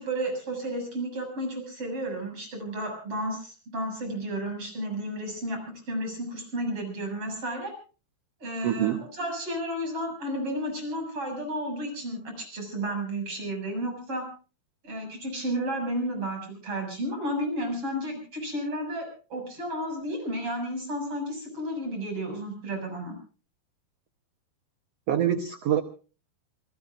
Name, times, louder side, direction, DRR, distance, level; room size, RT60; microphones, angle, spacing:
voice 1, 0.0-5.6 5.9-7.7 8.4-14.3 14.8-23.1, right 1 dB, 35° right, 4 dB, 7.7 m, -32 dB
voice 2, 8.6-9.0 25.1-25.8, right 10 dB, 90° right, 9 dB, 1.4 m, -25 dB
27.5 x 19.5 x 2.5 m, 0.37 s
omnidirectional pair, 4.4 m